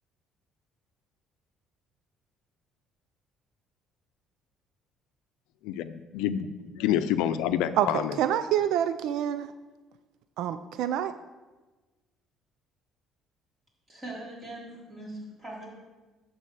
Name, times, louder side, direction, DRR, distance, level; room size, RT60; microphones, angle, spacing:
voice 1, 5.6-8.2, left 10 dB, 90° left, 11 dB, 0.6 m, -28 dB
voice 2, 7.8-9.5 10.4-11.1, right 10 dB, 75° right, 12 dB, 0.4 m, -27 dB
voice 3, 13.9-15.7, right 1 dB, 20° right, -5 dB, 3.9 m, -41 dB
11.0 x 4.2 x 7.9 m, 1.2 s
cardioid pair, 125°, 0 cm